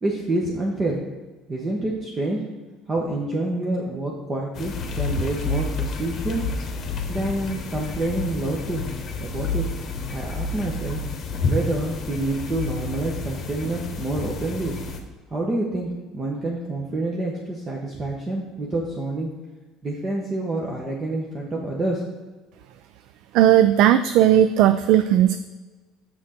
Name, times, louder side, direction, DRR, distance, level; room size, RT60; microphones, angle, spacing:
voice 1, 0.0-1.0 1.5-2.4 2.9-6.4 7.1-8.8 9.2-9.7 10.1-11.0 11.5-14.7 15.3-19.3 19.8-22.0, right 2 dB, 25° right, -2 dB, 1.0 m, -27 dB
sound 1, 4.5-15.0, left 3 dB, 40° left, 1.0 m, -29 dB
voice 2, 23.3-25.4, right 11 dB, 65° right, 11 dB, 0.3 m, -16 dB
6.3 x 5.9 x 4.3 m, 1.3 s
cardioid pair, 125°, 0 cm